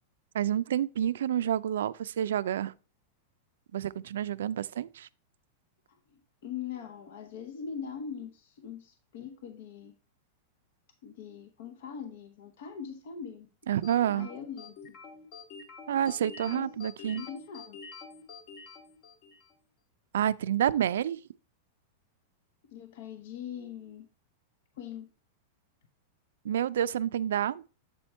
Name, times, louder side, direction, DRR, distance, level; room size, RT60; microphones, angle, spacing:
voice 1, 0.3-2.7 3.7-5.1 13.7-14.3 15.9-17.2 20.1-21.2 26.4-27.7, right 10 dB, 85° right, 0.3 m, -29 dB
voice 2, 5.9-9.9 11.0-13.5 14.0-14.9 16.4-16.7 17.0-17.8 22.7-24.1 24.7-25.1, left 7 dB, 65° left, 0.7 m, -42 dB
sound 1, 13.8-19.6, left 5 dB, 40° left, 1.0 m, -47 dB
7.6 x 4.3 x 4.4 m
supercardioid pair, 155°, 0 cm